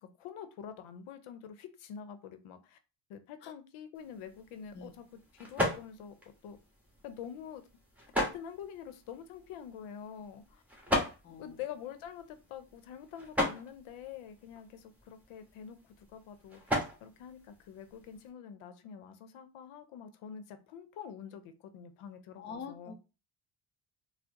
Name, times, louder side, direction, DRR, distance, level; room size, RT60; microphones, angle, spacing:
voice 1, 0.0-2.8 3.1-5.0 5.3-6.2 6.4-6.6 7.0-7.6 8.2-10.6 11.4-22.9, left 8 dB, 75° left, 10 dB, 0.7 m, -46 dB
sound 1, 3.9-18.3, left 1 dB, 5° right, 1.2 m, -38 dB
voice 2, 11.2-11.6 22.4-22.9, left 5 dB, 25° left, 6 dB, 0.4 m, -45 dB
4.3 x 2.0 x 2.9 m, 0.30 s
cardioid pair, 90°, 50 cm